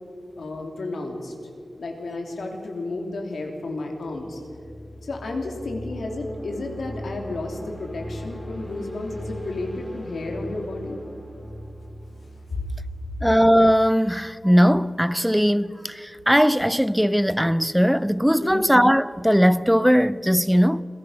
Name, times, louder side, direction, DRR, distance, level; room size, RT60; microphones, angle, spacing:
voice 1, 0.4-1.3 1.8-4.4 5.0-11.0 18.4-18.6, left 2 dB, 85° left, 3.3 m, -32 dB
sound 1, 4.0-14.8, equal, 25° left, 3.2 m, -39 dB
voice 2, 13.2-20.8, equal, ahead, 0.5 m, -19 dB
27.5 x 17.5 x 5.7 m
cardioid pair, 60°, 0 cm